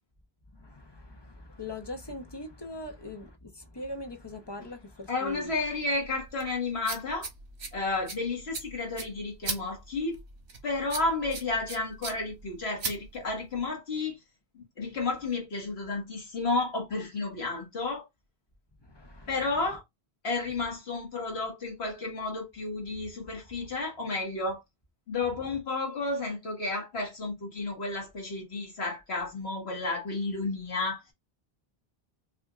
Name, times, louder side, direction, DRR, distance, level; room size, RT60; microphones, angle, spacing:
voice 1, 0.5-5.5 18.8-19.3, left 2 dB, 25° left, 0.9 m, -41 dB
voice 2, 5.1-7.3 7.7-10.2 10.6-14.2 14.5-18.1 19.3-19.8 20.2-24.6 25.1-31.0, left 3 dB, 80° left, 2.0 m, -32 dB
sound 1, 5.3-13.7, right 4 dB, 90° right, 1.4 m, -40 dB
5.6 x 2.6 x 2.4 m
omnidirectional pair, 1.1 m